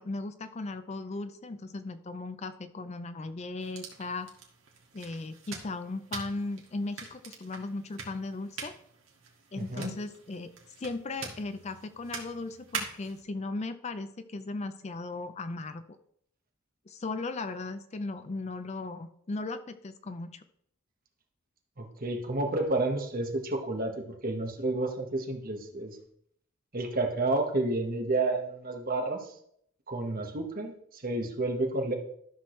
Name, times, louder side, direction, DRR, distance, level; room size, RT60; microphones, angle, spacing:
voice 1, 0.0-4.3 4.9-8.7 9.5-10.5 10.8-15.8 16.9-20.4, left 3 dB, 30° left, 11 dB, 0.4 m, -37 dB
sound 1, 3.6-13.2, right 5 dB, 70° right, 1.8 m, -44 dB
voice 2, 9.6-9.9 21.8-26.0 26.7-29.3 29.9-31.9, right 2 dB, 45° right, 3 dB, 1.3 m, -30 dB
12.5 x 6.1 x 3.2 m, 0.69 s
head